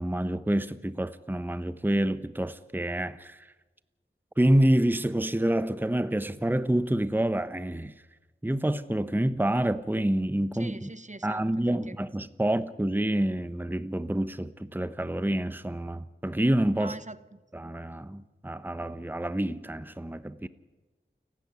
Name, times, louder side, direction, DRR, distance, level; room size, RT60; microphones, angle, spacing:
voice 1, 0.0-3.5 4.4-7.9 8.4-10.9 11.2-17.0 17.5-20.5, right 1 dB, 10° right, 0.9 m, -27 dB
voice 2, 10.5-12.0 16.7-17.4 20.4-20.5, right 2 dB, 35° right, 1.0 m, -43 dB
29.5 x 12.5 x 9.5 m
wide cardioid pair, 55°, 20 cm